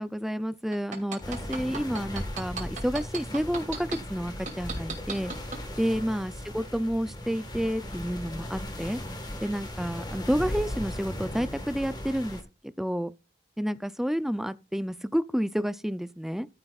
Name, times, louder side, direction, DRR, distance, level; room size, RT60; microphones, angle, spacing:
voice 1, 0.0-5.3 5.8-9.0 9.4-13.1 13.6-16.5, equal, ahead, 0.4 m, -30 dB
sound 1, 0.7-4.0 4.5-5.6 6.1-6.2, right 5 dB, 45° right, 2.7 m, -35 dB
sound 2, 1.2-12.4, left 1 dB, 25° left, 1.5 m, -37 dB
14.0 x 7.7 x 2.4 m
head